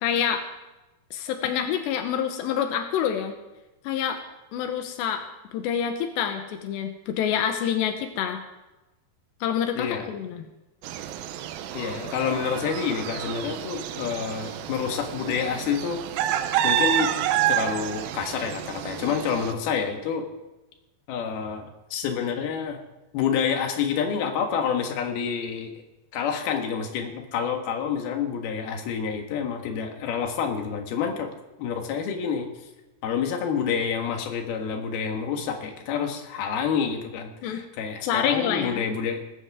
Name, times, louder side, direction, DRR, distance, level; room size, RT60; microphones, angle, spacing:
voice 1, 0.0-0.4 1.1-3.3 3.8-4.2 4.5-5.2 5.5-8.4 9.4-10.4 19.0-19.1 37.4-37.6 38.1-38.9, left 8 dB, 90° left, 6 dB, 3.2 m, -27 dB
voice 2, 9.8-10.1 11.7-16.4 16.6-17.1 17.5-20.2 21.1-22.8 23.1-25.7 26.1-31.3 31.6-32.7 33.0-39.2, left 7 dB, 70° left, 3 dB, 3.5 m, -28 dB
sound 1, 10.8-19.5, right 10 dB, 75° right, 2.3 m, -29 dB
19.5 x 16.0 x 3.6 m, 1.0 s
omnidirectional pair, 4.8 m